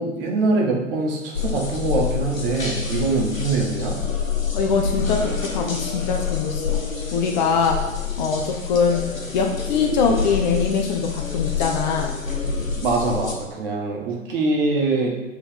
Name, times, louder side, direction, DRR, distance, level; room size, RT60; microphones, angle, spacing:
voice 1, 0.0-4.0 12.8-15.1, right 3 dB, 45° right, -1 dB, 1.5 m, -23 dB
sound 1, 1.3-13.3, left 6 dB, 80° left, 1.2 m, -27 dB
voice 2, 4.5-6.8 7.1-7.8 8.2-9.0 9.3-12.1, left 5 dB, 35° left, 3 dB, 0.6 m, -22 dB
8.3 x 3.6 x 3.5 m, 1.1 s
figure-of-eight pair, 110°, 39 cm